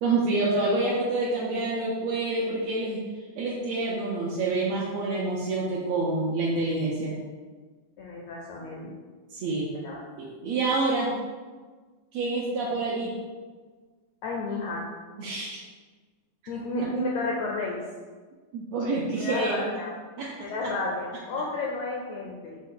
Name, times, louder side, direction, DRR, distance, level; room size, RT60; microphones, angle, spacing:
voice 1, 0.0-3.0 3.4-7.1 9.3-9.7 10.2-11.1 12.1-13.1 15.2-15.6 18.5-19.6 20.2-20.5, right 2 dB, 80° right, -6 dB, 1.5 m, -27 dB
voice 2, 8.0-8.9 9.7-10.0 14.2-14.9 16.5-17.8 19.2-19.9 20.4-22.6, left 2 dB, 85° left, -2 dB, 1.6 m, -32 dB
6.1 x 2.3 x 3.6 m, 1.4 s
omnidirectional pair, 3.7 m